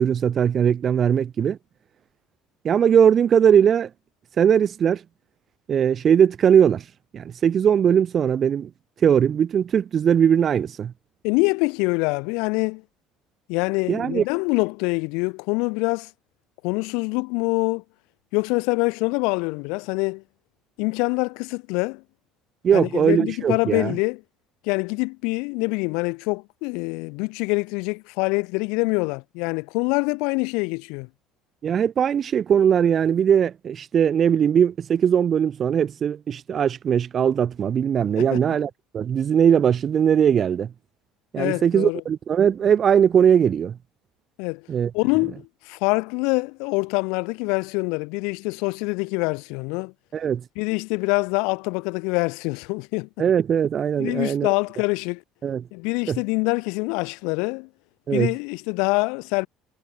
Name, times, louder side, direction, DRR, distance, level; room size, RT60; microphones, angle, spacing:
voice 1, 0.0-1.6 2.6-3.9 4.4-5.0 5.7-6.8 7.1-8.7 9.0-10.9 13.9-14.2 22.6-23.9 31.6-40.7 41.3-43.8 44.7-44.9 50.1-50.4 53.2-54.5 55.4-55.6 56.1-56.2 58.1-58.3, right 8 dB, 45° right, 0.9 m, -20 dB
voice 2, 11.2-12.8 13.5-16.1 16.6-17.8 18.3-20.2 20.8-22.0 22.7-24.2 24.6-31.1 38.2-38.4 41.4-42.0 44.4-44.7 44.9-49.9 50.6-53.1 54.0-55.2 55.7-57.7 58.1-59.5, left 30 dB, 75° left, 0.9 m, -25 dB
hypercardioid pair, 80°, 0 cm